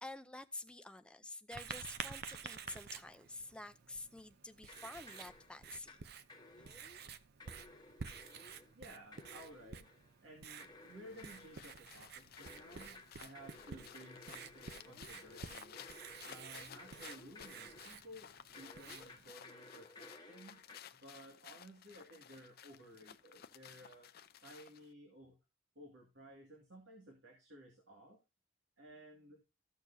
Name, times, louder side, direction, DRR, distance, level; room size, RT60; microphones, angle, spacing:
voice 1, 0.0-6.0, left 2 dB, 5° left, 0.5 m, -49 dB
Writing, 1.5-19.3, right 6 dB, 55° right, 0.6 m, -51 dB
sound 1, 4.7-6.0 6.3-7.0 7.4-8.7 9.1-10.1 10.6-11.8 12.4-18.0 18.5-20.8, left 2 dB, 25° left, 1.1 m, -57 dB
voice 2, 8.8-9.9 10.2-15.9 16.2-20.6 20.9-24.1 24.4-25.4 25.8-28.2 28.8-29.4, equal, 85° right, 2.2 m, -56 dB
sound 2, 10.8-24.9, left 9 dB, 55° left, 0.5 m, -56 dB
14.0 x 6.6 x 2.7 m
head